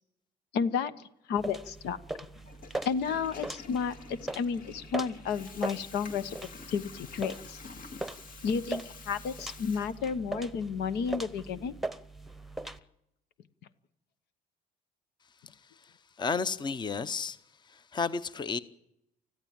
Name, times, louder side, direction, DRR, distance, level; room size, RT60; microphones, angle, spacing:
voice 1, 0.5-0.9 1.3-2.0 2.8-6.4 6.7-7.6 8.4-11.7, left 6 dB, 75° left, 1.1 m, -32 dB
sound 1, 1.4-12.8, right 2 dB, ahead, 1.0 m, -40 dB
Water tap faucet / Toilet flush, 2.3-10.4, left 5 dB, 55° left, 2.3 m, -49 dB
voice 2, 15.8-17.4 17.7-18.6, left 5 dB, 25° left, 0.8 m, -33 dB
20.5 x 14.5 x 8.8 m
cardioid pair, 110°, 17 cm